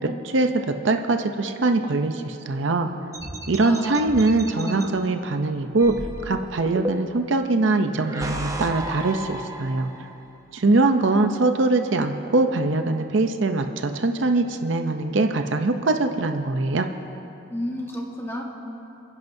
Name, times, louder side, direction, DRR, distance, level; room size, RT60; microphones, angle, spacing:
voice 1, 0.0-2.9 3.5-6.0 6.2-9.9 10.5-16.9, right 2 dB, 65° right, 6 dB, 0.6 m, -22 dB
sound 1, 3.1-4.9 5.8-7.3 7.9-10.1, right 1 dB, 15° right, 0.7 m, -33 dB
voice 2, 3.6-5.0 10.6-11.1 17.5-18.4, equal, 10° left, -1 dB, 1.4 m, -33 dB
29.0 x 10.5 x 2.7 m, 2.9 s
head